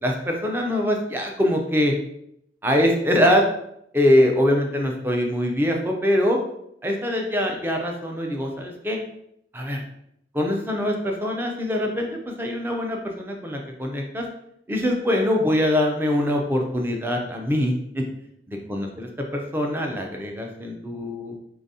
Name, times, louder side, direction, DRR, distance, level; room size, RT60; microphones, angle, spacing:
voice 1, 0.0-1.9 2.6-3.5 3.9-6.4 6.8-9.0 9.5-9.8 10.3-14.2 14.7-18.0 18.5-21.3, left 1 dB, 10° right, 1 dB, 0.5 m, -23 dB
3.9 x 3.3 x 2.7 m, 0.75 s
head